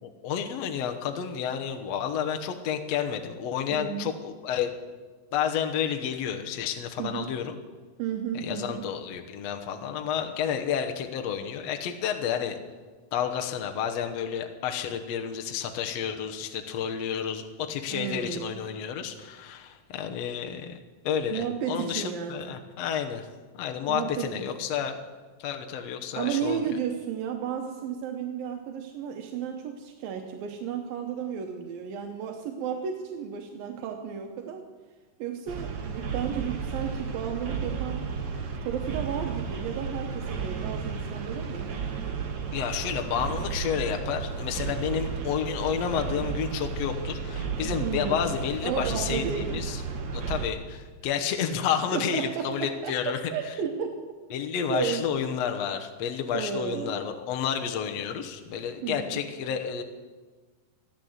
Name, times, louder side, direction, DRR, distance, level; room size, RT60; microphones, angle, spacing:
voice 1, 0.0-4.7 5.3-7.5 8.3-12.6 13.1-20.8 21.0-23.3 23.6-24.9 25.4-26.7 42.5-49.8 50.1-53.2 54.3-59.8, left 8 dB, 65° left, 4 dB, 1.8 m, -30 dB
voice 2, 3.7-4.1 7.0-7.3 8.0-8.9 17.9-18.6 21.3-22.6 23.9-24.7 26.2-34.6 35.2-38.0 38.6-41.7 47.8-48.3 48.6-49.8 51.9-54.0 54.7-55.0 56.3-56.9 58.8-59.2, right 8 dB, 85° right, 4 dB, 2.8 m, -33 dB
sound 1, 35.5-50.5, right 5 dB, 50° right, 1.4 m, -33 dB
15.0 x 11.0 x 7.9 m, 1.4 s
omnidirectional pair, 4.0 m